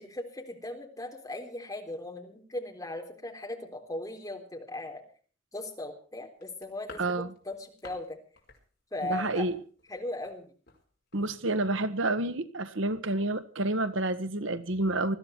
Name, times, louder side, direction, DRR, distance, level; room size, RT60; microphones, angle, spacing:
voice 1, 0.0-5.0 5.5-8.2 8.9-9.5 9.9-10.5, left 2 dB, 15° left, 2 dB, 3.5 m, -38 dB
sound 1, 6.4-8.1 8.3-8.6 8.9-10.4 10.7-10.8 11.1-11.3 11.5-11.7, left 3 dB, 50° left, 5.0 m, -51 dB
voice 2, 7.0-7.3 9.1-9.6 11.1-15.2, right 2 dB, 70° right, 12 dB, 1.3 m, -29 dB
21.0 x 14.0 x 4.5 m, 0.43 s
head